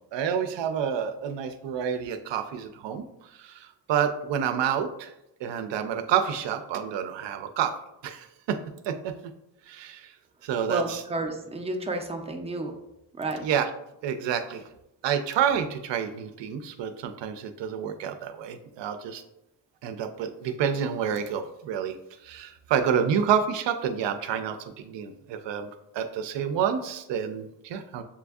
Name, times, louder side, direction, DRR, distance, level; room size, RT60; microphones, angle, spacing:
voice 1, 0.1-3.0 3.4-5.1 5.4-7.7 8.0-8.6 8.8-9.1 9.7-10.1 10.4-11.0 13.4-13.7 14.0-14.6 15.0-19.2 19.8-22.0 22.2-25.7 25.9-28.0, right 8 dB, 70° right, 8 dB, 0.5 m, -28 dB
voice 2, 10.7-12.7 13.2-13.4, right 2 dB, 15° right, 3 dB, 0.3 m, -31 dB
7.1 x 2.6 x 2.3 m, 0.87 s
wide cardioid pair, 155°, 44 cm